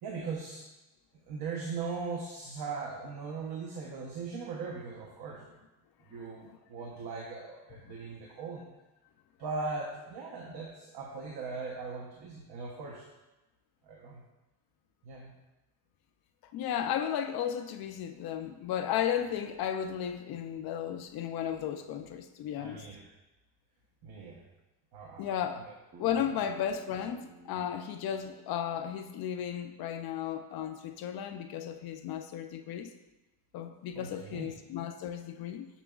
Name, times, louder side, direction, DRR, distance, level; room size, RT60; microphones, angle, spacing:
voice 1, 0.0-0.7 1.3-5.6 6.1-8.6 9.4-13.1 13.8-14.2 15.0-15.3 22.5-23.1 24.0-24.4 24.9-25.7 26.1-26.3 33.9-34.5, right 4 dB, 65° right, -2 dB, 1.0 m, -39 dB
voice 2, 16.5-22.8 25.2-25.6 26.0-32.9 33.5-35.7, left 9 dB, 60° left, 7 dB, 0.5 m, -34 dB
Bass guitar, 25.9-30.2, right 1 dB, 40° right, 0.9 m, -56 dB
7.0 x 6.0 x 2.4 m, 1.0 s
cardioid pair, 160°, 42 cm